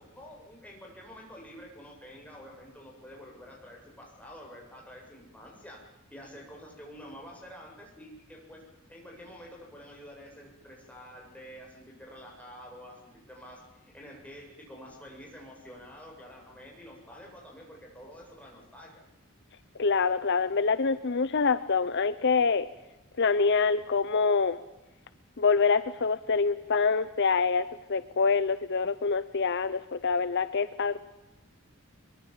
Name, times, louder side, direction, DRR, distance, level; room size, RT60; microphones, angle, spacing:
voice 1, 0.0-5.8 6.1-8.6 8.9-19.0, equal, 5° left, -1 dB, 7.9 m, -48 dB
voice 2, 19.8-22.7 23.2-24.6 25.4-31.0, left 4 dB, 55° left, 13 dB, 0.8 m, -26 dB
23.5 x 23.5 x 7.4 m, 0.98 s
head